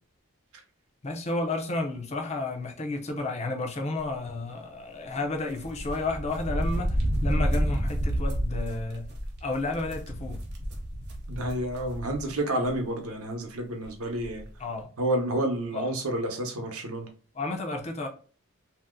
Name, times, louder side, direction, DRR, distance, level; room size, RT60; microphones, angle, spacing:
voice 1, 1.0-9.1 9.4-10.4 14.6-14.9 15.7-15.9 17.3-18.1, left 2 dB, 30° left, 0.5 m, -32 dB
sound 1, 5.6-12.3 12.6-12.7 13.8-13.9 14.2-14.4, equal, 50° right, 0.8 m, -30 dB
voice 2, 11.3-14.4 15.0-17.1, right 1 dB, 80° right, 0.8 m, -29 dB
2.7 x 2.1 x 3.6 m
head